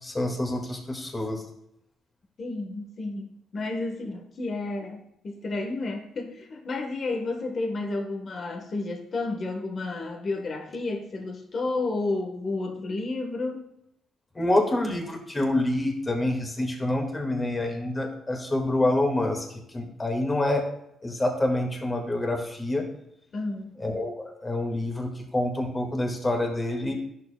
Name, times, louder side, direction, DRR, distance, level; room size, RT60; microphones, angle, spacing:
voice 1, 0.0-1.4 14.4-20.7 21.0-22.8 23.8-26.9, left 1 dB, 20° left, 2 dB, 1.7 m, -27 dB
voice 2, 2.4-13.7 23.3-23.7, left 2 dB, 50° left, 3 dB, 1.2 m, -31 dB
10.5 x 6.7 x 2.2 m, 0.80 s
cardioid pair, 90°, 0 cm